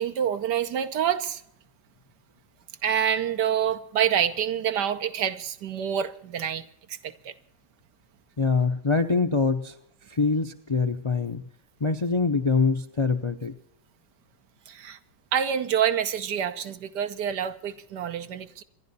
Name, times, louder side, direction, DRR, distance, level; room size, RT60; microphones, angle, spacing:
voice 1, 0.0-1.4 2.8-7.3 14.7-15.0 15.3-18.6, right 9 dB, 90° right, 1.5 m, -27 dB
voice 2, 8.4-9.7 10.1-11.4 11.8-13.5, left 4 dB, 45° left, 0.3 m, -24 dB
27.0 x 11.0 x 4.2 m
omnidirectional pair, 1.7 m